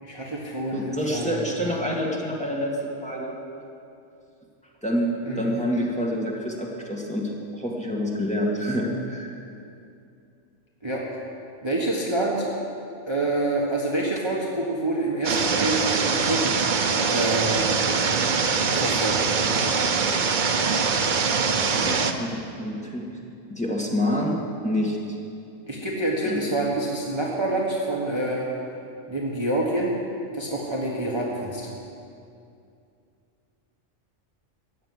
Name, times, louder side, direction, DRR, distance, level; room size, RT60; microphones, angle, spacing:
voice 1, 0.0-1.5 5.3-5.7 10.8-11.0 11.6-12.5 13.1-16.5 17.1-17.9 18.7-19.4 25.7-28.5 29.1-29.9 30.3-31.7, right 2 dB, 20° right, -4 dB, 1.4 m, -27 dB
voice 2, 0.7-3.4 4.8-9.3 21.5-23.1 23.5-25.0 26.2-26.5, equal, 5° left, -3 dB, 1.9 m, -27 dB
sound 1, 15.2-22.1, right 5 dB, 45° right, 0.8 m, -23 dB
16.0 x 6.8 x 9.6 m, 2.6 s
omnidirectional pair, 1.4 m